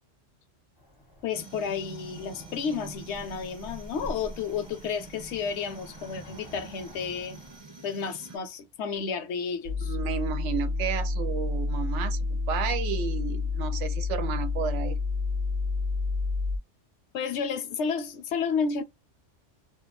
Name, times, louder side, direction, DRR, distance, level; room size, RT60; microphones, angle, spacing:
Cricket / Motor vehicle (road), 0.8-7.6, equal, 25° left, 0.6 m, -47 dB
voice 1, 1.2-7.4 7.8-10.0 17.1-18.8, left 6 dB, 75° left, 0.8 m, -31 dB
sound 1, 1.3-8.4, right 3 dB, 25° right, 0.9 m, -47 dB
sound 2, 9.6-16.6, left 3 dB, 60° right, 0.5 m, -29 dB
voice 2, 9.9-15.0, right 8 dB, 75° right, 0.9 m, -32 dB
2.2 x 2.2 x 2.9 m
omnidirectional pair, 1.2 m